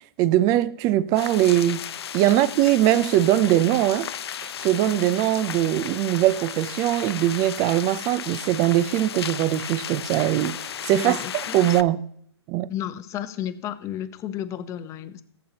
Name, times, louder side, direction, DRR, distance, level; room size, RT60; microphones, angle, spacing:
voice 1, 0.2-1.8 2.1-4.1 4.4-11.2 11.5-12.0 12.5-12.7, right 13 dB, 25° right, 0.5 m, -21 dB
sound 1, 1.2-11.8, left 9 dB, 65° left, 0.6 m, -35 dB
voice 2, 10.9-11.6 12.7-15.2, left 11 dB, 20° left, 0.8 m, -32 dB
18.5 x 8.6 x 2.9 m
hypercardioid pair, 135°, 14 cm